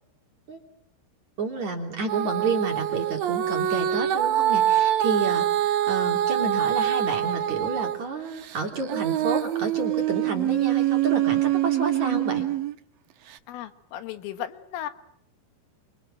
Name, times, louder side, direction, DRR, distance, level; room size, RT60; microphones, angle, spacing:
voice 1, 1.4-12.5, right 4 dB, 40° right, 2 dB, 4.1 m, -30 dB
Female singing, 2.1-8.0 8.4-12.7 13.3-13.4, right 12 dB, 70° right, 2.3 m, -24 dB
voice 2, 13.5-14.9, left 11 dB, 80° left, 9 dB, 4.1 m, -35 dB
27.0 x 26.5 x 7.8 m, 0.70 s
omnidirectional pair, 5.8 m